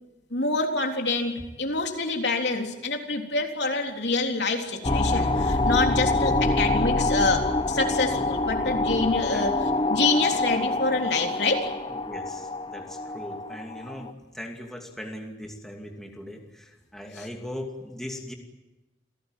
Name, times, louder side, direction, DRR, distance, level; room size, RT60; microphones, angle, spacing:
voice 1, 0.3-9.5 9.9-11.7 17.2-17.3, left 3 dB, 60° left, 2 dB, 3.6 m, -26 dB
sound 1, 4.8-14.1, left 2 dB, 25° left, 1.0 m, -26 dB
voice 2, 9.1-9.5 12.0-18.3, left 1 dB, ahead, 1 dB, 2.6 m, -39 dB
29.0 x 18.0 x 9.2 m, 1.1 s
head